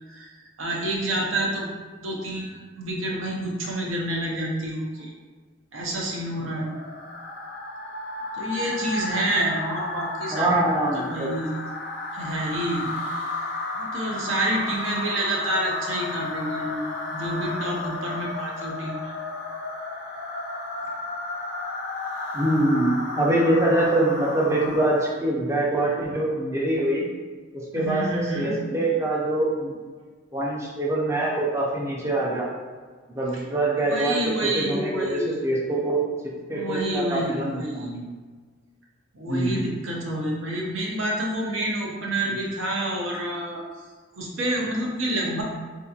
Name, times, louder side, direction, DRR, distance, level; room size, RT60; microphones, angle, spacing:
voice 1, 0.1-5.1 5.7-6.8 8.3-10.6 10.9-11.6 12.1-12.9 13.7-19.2 27.7-28.6 33.3-33.4 33.8-35.4 36.5-37.9 39.1-43.6 44.1-45.4, right 1 dB, 80° right, -2 dB, 0.7 m, -28 dB
sound 1, 6.3-25.2, left 2 dB, 60° left, 0.5 m, -33 dB
voice 2, 10.3-11.3 22.3-27.0 27.7-29.7 30.3-32.5 33.1-38.0 39.3-39.6, right 1 dB, 15° right, -4 dB, 0.5 m, -24 dB
3.7 x 2.8 x 2.4 m, 1.5 s
head